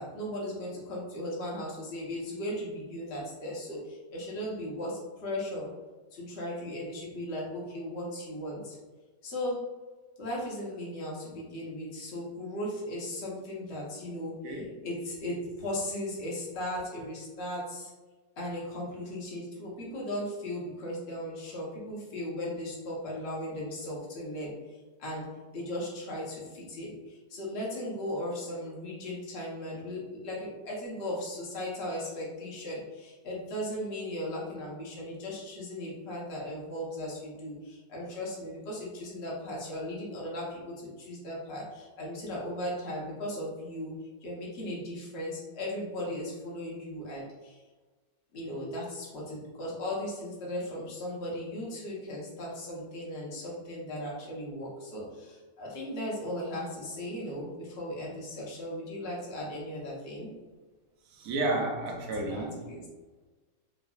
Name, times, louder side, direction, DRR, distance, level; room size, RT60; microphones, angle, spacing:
voice 1, 0.0-5.7 6.1-8.8 9.2-9.7 10.2-17.9 18.4-44.0 44.2-47.6 48.3-60.4 62.2-62.9, left 1 dB, 45° left, -5 dB, 1.0 m, -37 dB
voice 2, 61.1-62.6, right 2 dB, 65° right, 1 dB, 1.0 m, -31 dB
4.8 x 2.4 x 2.3 m, 1.3 s
omnidirectional pair, 1.9 m